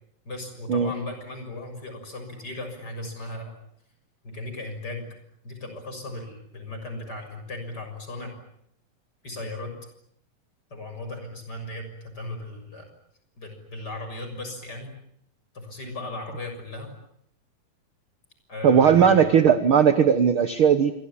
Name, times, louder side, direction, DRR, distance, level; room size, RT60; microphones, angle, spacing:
voice 1, 0.3-3.5 4.2-5.1 5.4-8.3 9.2-9.7 10.7-12.9 13.4-14.9 15.5-16.9 18.5-19.3, left 2 dB, 25° left, 6 dB, 7.0 m, -36 dB
voice 2, 18.6-20.9, right 7 dB, 55° right, 11 dB, 1.5 m, -18 dB
27.5 x 24.0 x 8.8 m, 0.72 s
omnidirectional pair, 4.0 m